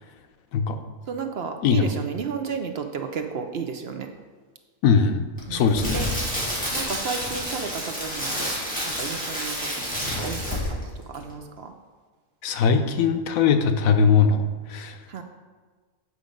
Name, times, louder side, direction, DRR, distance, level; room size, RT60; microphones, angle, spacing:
voice 1, 1.1-4.1 5.5-6.0 6.7-8.5 9.0-11.7 15.1-15.2, right 6 dB, 60° right, 5 dB, 0.8 m, -33 dB
voice 2, 4.8-6.0 12.4-14.4 14.7-15.0, left 6 dB, 85° left, 7 dB, 1.1 m, -20 dB
Crackle, 5.4-10.9 11.1-11.3, equal, 5° left, 2.4 m, -29 dB
8.3 x 5.1 x 5.1 m, 1.4 s
omnidirectional pair, 1.4 m